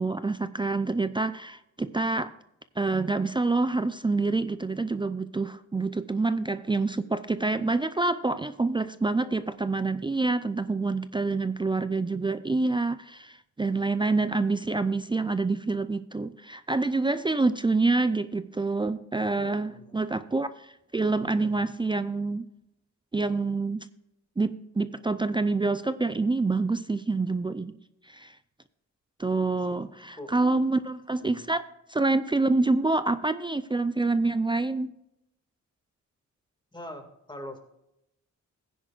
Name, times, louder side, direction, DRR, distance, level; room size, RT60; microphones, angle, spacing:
voice 1, 0.0-2.3 2.8-22.5 23.1-23.9 24.4-27.7 28.1-28.4 29.2-31.6 31.9-34.9, right 3 dB, 15° right, 12 dB, 0.4 m, -27 dB
voice 2, 19.2-20.0 21.3-21.6 29.4-29.6 30.2-30.3 31.2-31.5 32.6-32.7 36.7-37.6, left 1 dB, 15° left, 4 dB, 2.0 m, -43 dB
15.5 x 10.0 x 2.4 m, 0.85 s
cardioid pair, 100°, 30 cm